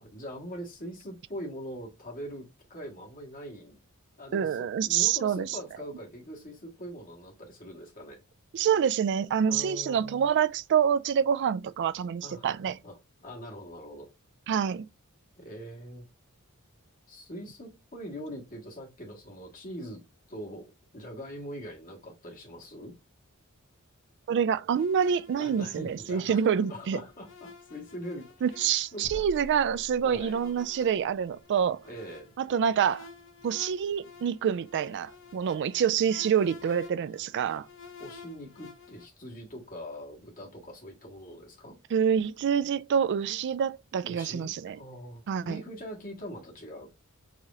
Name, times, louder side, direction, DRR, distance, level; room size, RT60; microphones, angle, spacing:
voice 1, 0.0-3.8 4.2-8.2 9.5-10.3 12.2-14.1 15.4-16.1 17.1-20.0 20.3-20.7 20.9-22.9 25.4-26.4 26.7-28.5 28.9-29.3 30.0-30.4 31.8-32.3 38.0-41.8 44.1-46.9, equal, 40° left, 1.8 m, -42 dB
voice 2, 4.3-5.6 8.5-12.8 14.5-14.9 24.3-27.0 28.4-31.8 32.4-33.1 33.4-37.7 41.9-44.8 45.3-45.6, right 8 dB, 55° right, 0.3 m, -27 dB
sound 1, 24.8-39.1, left 5 dB, 60° left, 0.9 m, -52 dB
sound 2, 29.0-30.6, equal, 25° left, 0.9 m, -44 dB
4.8 x 2.8 x 3.6 m
head